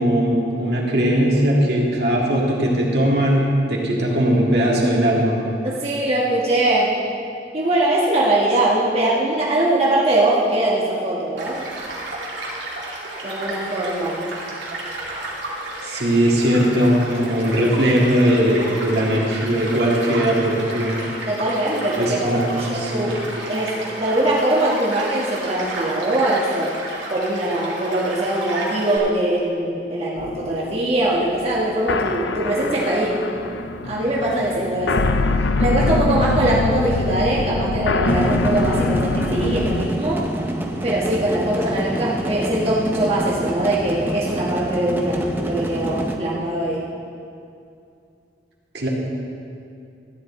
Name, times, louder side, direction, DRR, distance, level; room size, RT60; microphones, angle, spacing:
voice 1, 0.0-3.4 3.7-5.4 15.8-21.0 22.0-23.1 48.7-48.9, equal, 65° right, -3 dB, 2.1 m, -19 dB
voice 2, 5.6-6.9 7.5-11.6 13.2-14.2 21.3-23.2 23.4-26.7 27.1-33.2 33.8-35.1 35.6-40.3 40.8-46.8, right 1 dB, 35° right, -6 dB, 1.3 m, -22 dB
Child speech kid speaking / Stream / Car passing by, 11.4-29.0, right 2 dB, 85° right, 2.6 m, -32 dB
sound 1, 30.2-39.9, left 3 dB, 80° left, 0.5 m, -23 dB
sound 2, 38.1-46.2, equal, 10° right, 0.7 m, -27 dB
14.0 x 9.8 x 4.2 m, 2.5 s
head